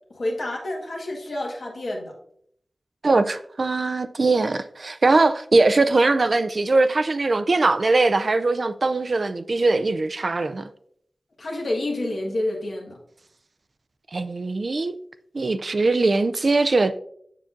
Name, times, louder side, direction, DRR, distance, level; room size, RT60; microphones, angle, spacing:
voice 1, 0.1-2.1 11.4-13.0, left 1 dB, 80° left, 1.5 m, -28 dB
voice 2, 3.0-10.7 14.1-15.0 15.3-17.0, right 3 dB, 65° right, 0.4 m, -21 dB
7.3 x 5.8 x 2.6 m
wide cardioid pair, 60°, 0 cm